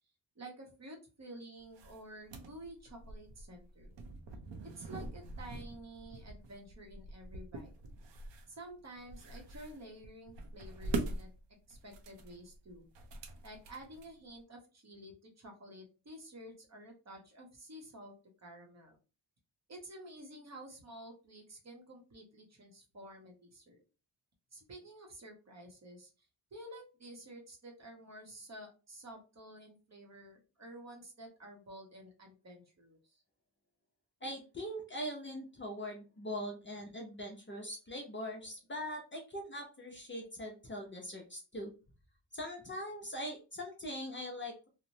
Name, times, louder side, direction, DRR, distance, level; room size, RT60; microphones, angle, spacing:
voice 1, 0.4-3.9 4.8-7.7 8.5-11.3 11.7-12.9 13.4-18.1 18.4-19.0 19.7-23.8 24.5-33.2, right 1 dB, 35° right, 1 dB, 0.8 m, -51 dB
sound 1, 1.6-14.4, right 3 dB, 80° right, 0.6 m, -44 dB
voice 2, 34.2-41.7 42.3-44.7, equal, 25° left, 0 dB, 0.5 m, -42 dB
2.9 x 2.0 x 2.6 m, 0.32 s
wide cardioid pair, 165°, 44 cm